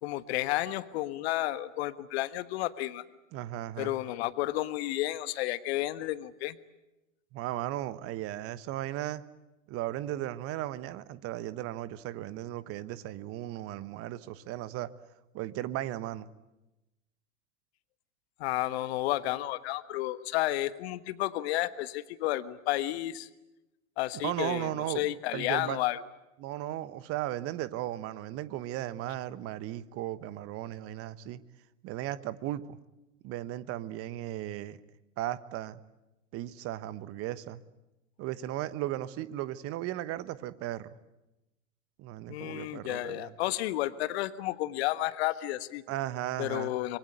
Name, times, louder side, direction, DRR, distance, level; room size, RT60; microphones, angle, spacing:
voice 1, 0.0-3.0 3.8-6.6 18.4-23.3 24.0-24.7 24.9-26.0 42.3-45.8 46.4-47.0, left 16 dB, 50° left, 13 dB, 1.5 m, -31 dB
voice 2, 3.3-3.9 7.3-9.2 9.7-14.9 15.3-16.3 24.1-25.0 25.3-25.8 26.4-31.4 31.8-32.8 33.2-34.8 35.2-35.8 36.3-37.6 38.2-40.9 42.0-43.3 45.9-46.7, right 14 dB, 35° right, 16 dB, 1.2 m, -36 dB
25.5 x 22.5 x 9.1 m, 0.97 s
figure-of-eight pair, 95°, 41 cm